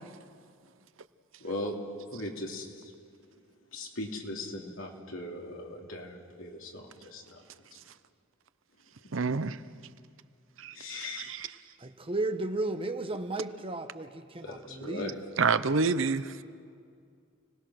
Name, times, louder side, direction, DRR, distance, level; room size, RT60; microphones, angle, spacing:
voice 1, 1.4-1.8 2.1-2.9 3.7-7.4 10.7-11.3 14.4-15.2, left 1 dB, 80° left, 2.9 m, -39 dB
voice 2, 9.1-9.6 10.6-11.5 15.4-16.3, right 4 dB, 70° right, 0.7 m, -28 dB
voice 3, 11.8-15.2, right 2 dB, 25° right, 1.0 m, -34 dB
30.0 x 19.0 x 6.4 m
head